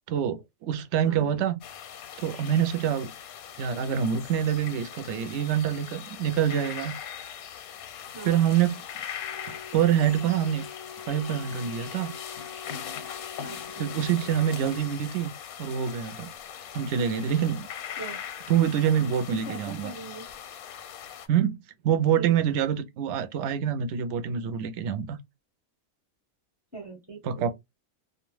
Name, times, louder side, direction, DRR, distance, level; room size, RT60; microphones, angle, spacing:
voice 1, 0.1-1.6 2.2-3.1 3.6-6.9 8.2-8.8 9.5-10.6 11.1-12.1 13.8-15.3 15.6-16.3 16.7-17.7 18.5-19.9 21.3-21.6 21.8-25.2 27.2-27.5, right 9 dB, 65° right, 0.8 m, -26 dB
voice 2, 1.0-1.4 8.1-8.5 13.4-14.0 18.0-18.2 19.0-20.3 22.2-22.6 26.7-27.5, right 3 dB, 10° right, 0.7 m, -41 dB
sound 1, 1.6-21.3, left 9 dB, 85° left, 1.1 m, -41 dB
Wind instrument woodwind instrument, 9.2-15.0, left 6 dB, 55° left, 0.7 m, -45 dB
2.4 x 2.2 x 3.1 m
omnidirectional pair, 1.5 m